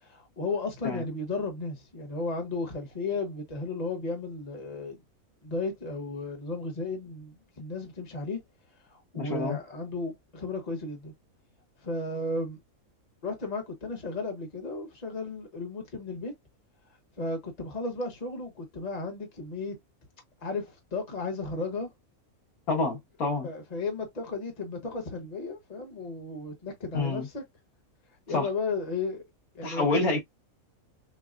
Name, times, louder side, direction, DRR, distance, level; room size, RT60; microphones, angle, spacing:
voice 1, 0.0-5.0 5.4-8.4 8.9-11.1 11.8-12.6 13.2-16.3 17.2-19.8 20.4-21.9 23.4-27.4 28.3-29.2 29.5-30.2, left 3 dB, 30° left, 1.2 m, -34 dB
voice 2, 9.2-9.6 22.7-23.5 26.9-27.3 28.3-28.5 29.6-30.2, left 3 dB, 85° left, 2.1 m, -28 dB
6.6 x 2.3 x 2.5 m
omnidirectional pair, 1.5 m